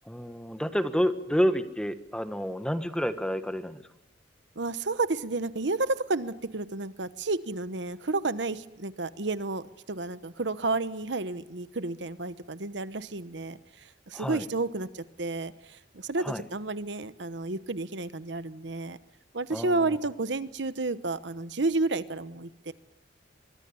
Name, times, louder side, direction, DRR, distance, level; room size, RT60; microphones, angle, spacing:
voice 1, 0.1-3.8 14.1-14.4 16.2-16.4 19.5-20.0, equal, 5° left, 10 dB, 1.4 m, -29 dB
voice 2, 4.6-13.6 14.1-19.0 19.3-22.7, right 3 dB, 70° right, 14 dB, 1.1 m, -31 dB
24.0 x 23.5 x 7.1 m, 0.91 s
head